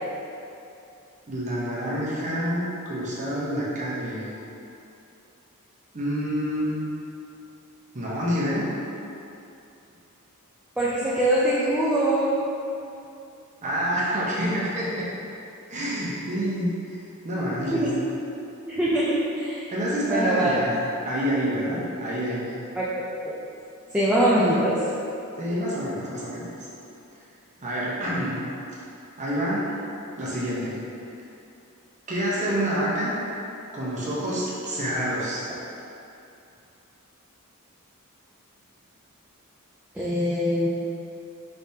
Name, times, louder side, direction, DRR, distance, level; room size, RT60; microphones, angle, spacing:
voice 1, 1.3-4.3 5.9-6.8 7.9-8.7 13.6-15.1 15.7-17.9 19.7-20.7 21.0-22.5 25.4-26.5 27.6-28.4 29.2-29.7 30.2-30.8 32.1-33.1 33.7-35.4, equal, 35° right, -7 dB, 0.8 m, -27 dB
voice 2, 10.8-12.4 17.6-17.9 18.6-19.7 20.1-20.5 22.8-22.9 23.2-23.4 23.9-24.8 39.9-40.8, right 1 dB, 5° right, -9 dB, 0.4 m, -23 dB
4.8 x 3.3 x 2.8 m, 2.8 s
head